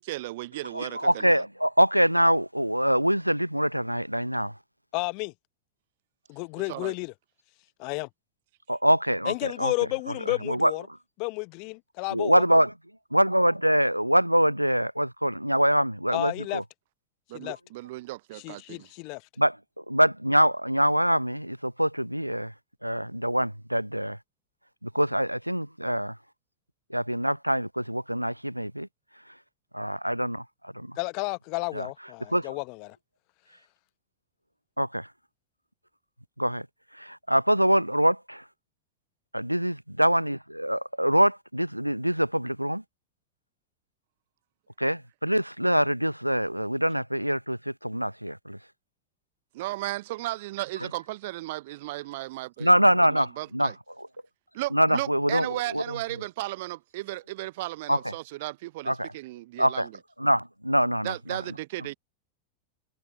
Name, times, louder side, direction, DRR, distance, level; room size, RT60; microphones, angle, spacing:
voice 1, 0.0-1.4 6.7-6.9 17.3-18.9 49.5-52.7 53.1-53.8 54.5-59.9 61.0-61.9, right 19 dB, 50° right, 0.8 m, -35 dB
voice 2, 0.7-4.5 8.7-9.7 10.3-10.7 12.1-12.7 13.1-16.6 19.4-22.5 22.8-24.2 24.8-26.2 26.9-28.9 29.7-31.0 31.7-31.9 32.3-32.6 34.8-35.1 36.4-36.7 36.9-38.4 39.3-42.8 44.8-48.6 52.6-53.7 54.7-56.0 57.9-58.0 58.9-59.1 59.6-59.9 60.2-61.4, equal, 90° right, 0.9 m, -24 dB
voice 3, 4.9-5.3 6.3-7.1 7.8-8.1 9.2-10.8 11.2-12.4 16.1-16.6 17.3-17.6 18.4-19.2 31.0-33.0, left 33 dB, 45° left, 0.9 m, -32 dB
figure-of-eight pair, 90°, 0 cm